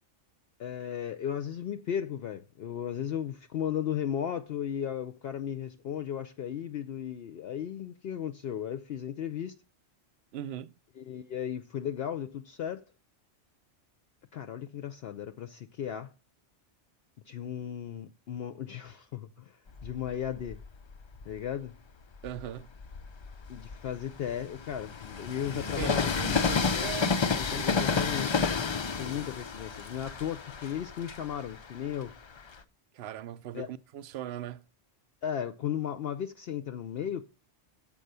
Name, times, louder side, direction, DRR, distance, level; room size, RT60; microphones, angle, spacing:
voice 1, 0.6-9.6 11.0-12.8 14.3-16.1 17.3-20.6 21.3-21.7 23.5-26.9 27.4-28.6 29.0-32.1 33.5-33.7 35.2-37.2, left 9 dB, 65° left, 0.8 m, -35 dB
voice 2, 10.3-10.7 22.2-22.7 25.5-27.7 32.9-34.6, right 10 dB, 65° right, 0.8 m, -40 dB
Train, 19.7-21.4 22.0-32.6, left 5 dB, 50° left, 0.3 m, -31 dB
7.6 x 5.4 x 6.7 m
omnidirectional pair, 1.2 m